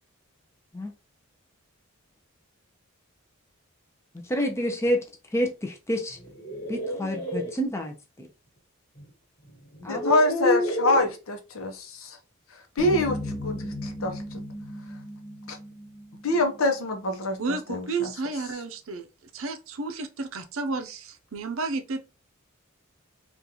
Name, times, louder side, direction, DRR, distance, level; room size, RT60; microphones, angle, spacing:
voice 1, 4.2-5.0 5.3-6.2 6.7-8.3 9.8-10.1, equal, 15° left, 0.5 m, -28 dB
sound 1, 6.2-7.5 9.0-9.1 9.7-11.1, equal, 45° left, 1.5 m, -29 dB
voice 2, 9.9-12.2 12.8-14.4 15.5-15.6 16.2-18.1, left 2 dB, 75° left, 0.8 m, -26 dB
sound 2, 12.8-17.1, left 1 dB, 30° left, 1.1 m, -36 dB
voice 3, 17.4-19.1 19.3-22.1, right 3 dB, 70° right, 0.5 m, -32 dB
3.7 x 2.5 x 2.8 m
head